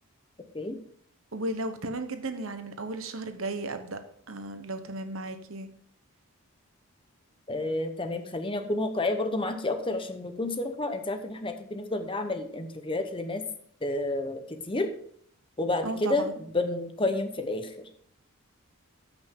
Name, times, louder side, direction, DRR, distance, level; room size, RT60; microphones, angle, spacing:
voice 1, 1.3-4.0 4.3-5.7 15.8-16.3, right 2 dB, 65° right, 8 dB, 1.1 m, -34 dB
voice 2, 7.5-13.4 13.8-14.9 15.6-17.7, left 2 dB, 25° left, 7 dB, 0.8 m, -30 dB
13.5 x 6.0 x 3.7 m, 0.64 s
head